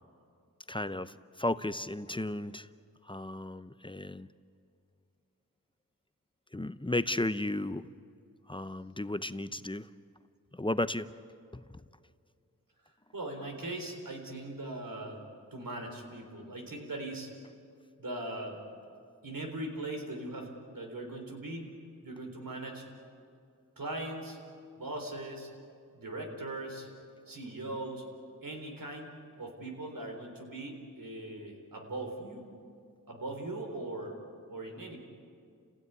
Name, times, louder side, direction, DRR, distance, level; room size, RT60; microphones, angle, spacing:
voice 1, 0.7-2.7 3.0-4.3 6.5-7.9 8.5-9.9 10.5-11.1 11.5-11.6, left 1 dB, 15° left, 14 dB, 0.6 m, -34 dB
voice 2, 13.1-15.2 15.5-17.3 18.0-18.6 19.2-21.7 22.0-22.9 23.8-24.4 24.8-25.5 25.9-26.9 27.3-28.0 28.4-29.1 29.4-32.5 33.1-34.2 34.5-35.0, right 2 dB, 75° right, 2 dB, 4.0 m, -40 dB
29.5 x 16.0 x 9.4 m, 2.4 s
wide cardioid pair, 55°, 34 cm